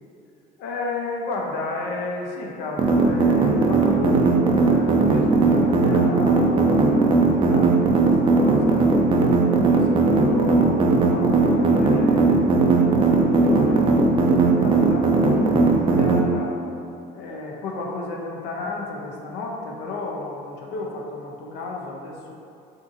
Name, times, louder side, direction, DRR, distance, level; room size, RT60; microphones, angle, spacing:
voice 1, 0.6-9.3 9.7-16.6 17.1-22.3, left 3 dB, 90° left, 0 dB, 0.5 m, -33 dB
sound 1, 2.8-16.2, right 4 dB, 30° right, 0.4 m, -18 dB
2.5 x 2.5 x 3.8 m, 2.5 s
cardioid pair, 110°, 17 cm